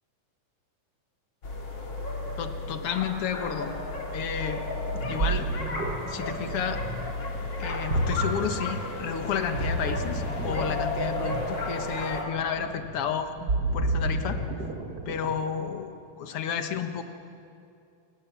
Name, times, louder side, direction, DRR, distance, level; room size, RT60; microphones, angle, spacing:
sound 1, 1.4-12.2, left 2 dB, 35° left, 3.3 m, -33 dB
voice 1, 2.4-3.7 4.1-4.6 5.1-5.5 6.1-6.8 7.6-13.3 13.7-14.4 15.1-15.9 16.2-17.0, left 7 dB, 55° left, 7 dB, 2.0 m, -31 dB
Ocean, 4.8-15.5, right 2 dB, 35° right, 1.9 m, -31 dB
28.5 x 20.5 x 7.3 m, 2.6 s
omnidirectional pair, 3.6 m